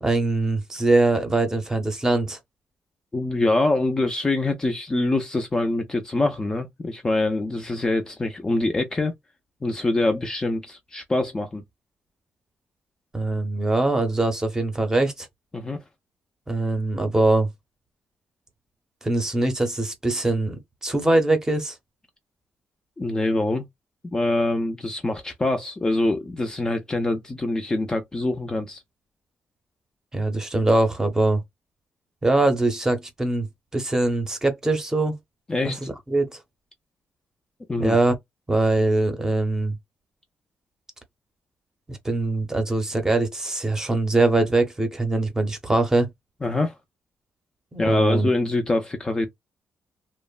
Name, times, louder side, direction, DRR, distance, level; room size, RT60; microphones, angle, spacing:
voice 1, 0.0-2.4 13.1-15.3 16.5-17.5 19.0-21.8 30.1-31.4 32.2-33.5 33.7-35.1 35.6-36.4 37.8-38.1 38.5-39.8 41.9-46.1 47.7-48.3, right 2 dB, 15° right, 0.7 m, -22 dB
voice 2, 3.1-9.1 9.6-11.6 15.5-15.8 23.0-23.6 24.1-28.8 35.5-35.9 37.7-38.0 46.4-46.7 47.8-49.3, left 2 dB, 15° left, 0.4 m, -24 dB
2.9 x 2.0 x 2.3 m
wide cardioid pair, 150°, 4 cm